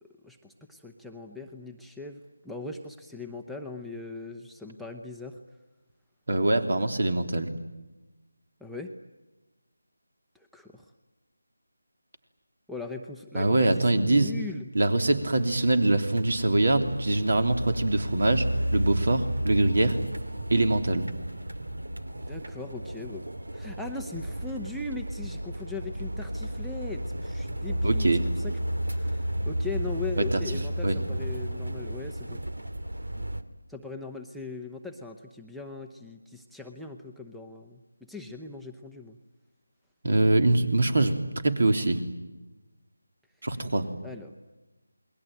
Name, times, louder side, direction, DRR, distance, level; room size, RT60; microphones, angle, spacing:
voice 1, 0.2-5.4 8.6-8.9 10.3-10.8 12.7-14.6 22.3-23.2 23.5-28.6 28.9-32.4 33.7-39.2 44.0-44.3, left 3 dB, ahead, 3 dB, 0.9 m, -39 dB
voice 2, 6.3-7.5 13.3-14.3 14.7-20.0 20.5-21.1 27.8-28.2 30.2-30.4 30.8-31.0 40.0-41.2 41.4-42.0 43.4-43.9, right 2 dB, 60° right, 7 dB, 3.3 m, -23 dB
sound 1, 15.0-33.4, right 1 dB, 90° right, 2.3 m, -33 dB
28.0 x 21.5 x 9.2 m, 1.1 s
figure-of-eight pair, 165°, 0 cm